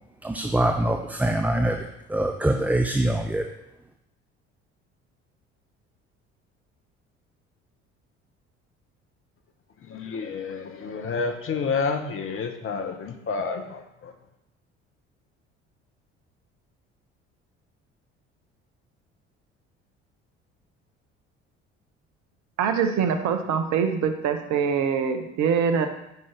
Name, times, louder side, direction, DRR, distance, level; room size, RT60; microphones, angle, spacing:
voice 1, 0.2-3.5, right 1 dB, 5° right, 4 dB, 0.6 m, -24 dB
voice 2, 9.9-14.1, left 5 dB, 40° left, 6 dB, 1.2 m, -29 dB
voice 3, 22.6-25.9, right 6 dB, 55° right, 7 dB, 1.0 m, -24 dB
8.0 x 5.5 x 5.1 m, 0.86 s
figure-of-eight pair, 55°, 34 cm